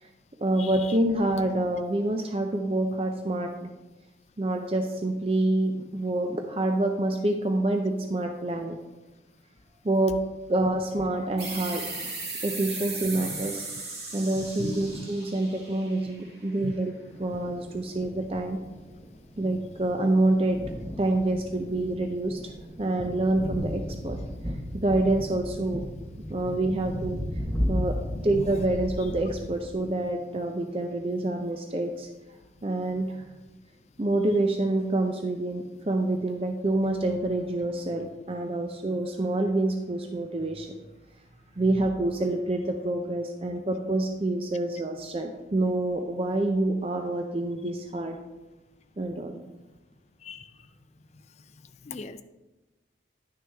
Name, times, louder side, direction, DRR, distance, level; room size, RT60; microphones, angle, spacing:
voice 1, 0.4-3.7 4.4-8.8 9.8-10.2 10.5-13.6 14.1-16.9 17.2-18.6 19.4-20.7 21.0-22.4 22.8-25.9 26.3-27.2 27.7-27.9 28.2-32.1 32.6-33.3 34.0-40.7 41.6-48.2 49.0-49.4, right 2 dB, 35° right, 4 dB, 0.5 m, -27 dB
sound 1, 11.4-16.7, right 3 dB, 65° right, 1.9 m, -37 dB
voice 2, 14.6-15.1 16.6-16.7 28.4-28.5 50.2-50.5 51.8-52.2, left 3 dB, 40° left, 10 dB, 0.4 m, -37 dB
Thunder, 17.1-29.7, equal, 10° left, 1.0 m, -35 dB
11.0 x 6.2 x 3.4 m, 1.1 s
head